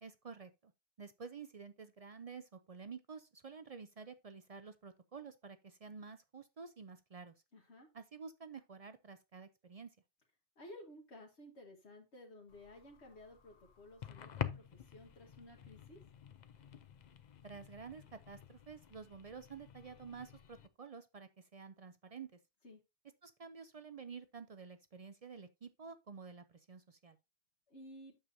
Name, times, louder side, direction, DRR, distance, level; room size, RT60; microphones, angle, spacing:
voice 1, 0.0-0.7 1.0-7.3 7.9-10.0 17.4-22.4 23.2-27.2, right 5 dB, 45° right, 0.5 m, -51 dB
voice 2, 7.5-7.9 10.6-16.0 22.6-22.8 27.7-28.2, left 1 dB, 75° left, 1.7 m, -55 dB
sound 1, 12.5-20.7, left 9 dB, 50° left, 0.6 m, -48 dB
8.8 x 6.7 x 2.7 m
omnidirectional pair, 1.2 m